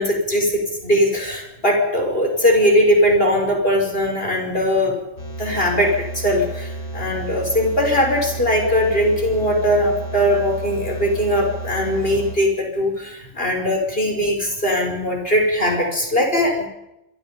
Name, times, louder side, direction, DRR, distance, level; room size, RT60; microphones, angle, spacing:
voice 1, 0.0-5.0 5.4-16.7, equal, 25° left, 1 dB, 6.2 m, -20 dB
sound 1, 5.2-12.4, right 2 dB, 50° left, 5.0 m, -32 dB
27.5 x 26.0 x 5.4 m, 0.87 s
omnidirectional pair, 2.1 m